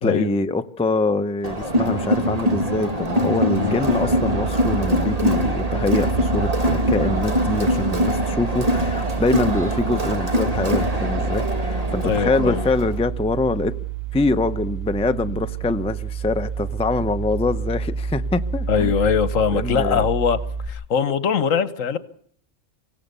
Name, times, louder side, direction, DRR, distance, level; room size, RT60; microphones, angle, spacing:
voice 1, 0.0-13.7 14.1-18.9 19.5-20.1, left 2 dB, 5° left, 9 dB, 0.5 m, -24 dB
Crowd, 1.4-13.0, equal, 30° right, 2.1 m, -23 dB
sound 1, 3.8-20.7, right 6 dB, 50° right, 2.4 m, -29 dB
voice 2, 12.0-12.6 18.7-20.4 20.7-22.0, left 7 dB, 75° left, 14 dB, 1.4 m, -21 dB
24.5 x 16.0 x 6.8 m, 0.62 s
omnidirectional pair, 1.4 m